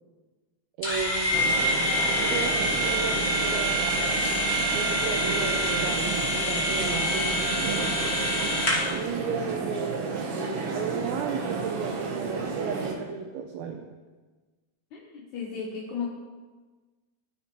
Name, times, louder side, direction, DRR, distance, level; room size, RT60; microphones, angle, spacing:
sound 1, 0.8-9.0, equal, 25° left, 0.9 m, -26 dB
voice 1, 0.8-1.6 2.3-3.9 4.7-7.9 8.9-10.3 10.7-13.9, right 6 dB, 80° right, 2 dB, 1.7 m, -34 dB
sound 2, 1.3-12.9, right 4 dB, 65° right, 1.6 m, -32 dB
voice 2, 14.9-16.1, left 6 dB, 75° left, -3 dB, 2.3 m, -34 dB
13.5 x 5.8 x 3.0 m, 1.3 s
omnidirectional pair, 3.6 m